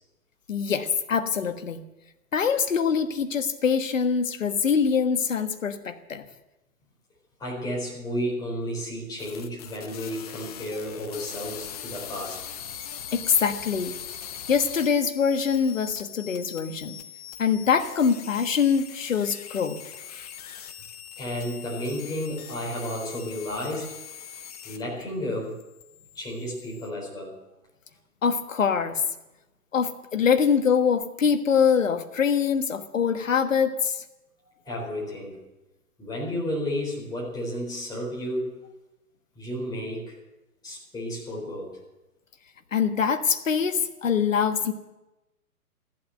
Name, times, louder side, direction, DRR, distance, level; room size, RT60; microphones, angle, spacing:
voice 1, 0.5-1.8 2.3-6.2 13.1-14.0 14.5-17.0 17.4-19.8 20.1-20.2 28.2-29.0 29.7-34.0 42.7-44.7, left 6 dB, 55° left, 8 dB, 1.4 m, -24 dB
voice 2, 7.4-12.4 21.2-24.0 24.6-25.6 26.1-27.4 34.6-35.4 36.0-38.5 39.4-40.2 40.6-41.7, equal, 10° left, -4 dB, 4.4 m, -32 dB
sound 1, 9.2-25.0 25.3-26.9, left 9 dB, 25° left, 0.8 m, -41 dB
14.5 x 12.0 x 7.8 m, 0.99 s
figure-of-eight pair, 130°, 45 cm